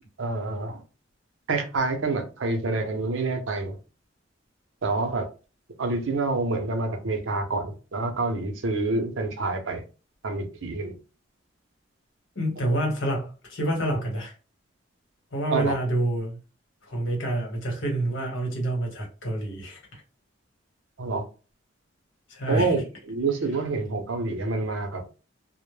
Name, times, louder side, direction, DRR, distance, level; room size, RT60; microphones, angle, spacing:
voice 1, 0.2-0.8 1.5-3.8 4.8-5.3 5.8-9.8 10.2-11.0 15.5-15.8 21.0-21.2 22.5-25.0, right 3 dB, 75° right, 0.6 m, -27 dB
voice 2, 12.3-14.3 15.3-16.4 16.9-19.8 22.3-22.7, right 1 dB, 75° left, 1.1 m, -27 dB
2.1 x 2.0 x 3.1 m
head